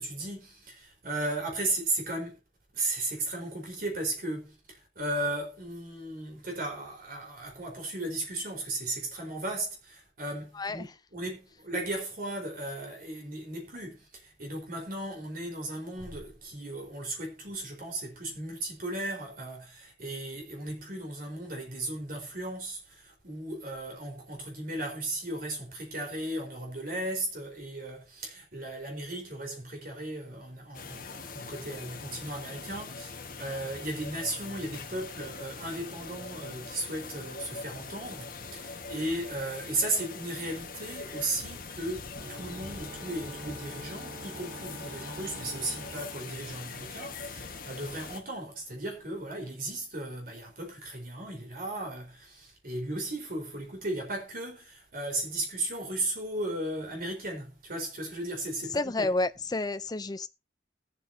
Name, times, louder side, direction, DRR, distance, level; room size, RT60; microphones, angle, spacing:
voice 1, 0.0-2.4 2.7-59.1, right 2 dB, 50° right, 4.3 m, -36 dB
sound 1, 30.7-48.2, left 4 dB, 50° left, 1.5 m, -42 dB
sound 2, 42.2-47.1, right 2 dB, 10° right, 7.1 m, -46 dB
voice 2, 58.7-60.3, left 2 dB, 20° left, 0.5 m, -30 dB
20.5 x 7.6 x 2.8 m
head